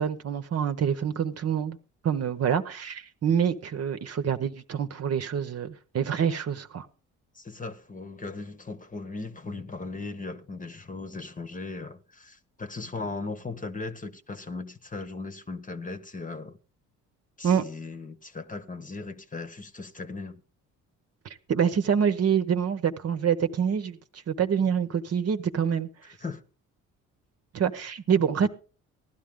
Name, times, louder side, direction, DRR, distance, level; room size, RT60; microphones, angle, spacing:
voice 1, 0.0-1.8 2.0-6.9 17.4-17.6 21.5-24.0 24.3-25.9 27.5-28.5, right 7 dB, 50° right, 1.0 m, -26 dB
voice 2, 7.3-16.6 17.4-20.4 26.2-26.4, left 3 dB, 25° left, 1.2 m, -38 dB
16.0 x 11.5 x 3.7 m
supercardioid pair, 65°, 33 cm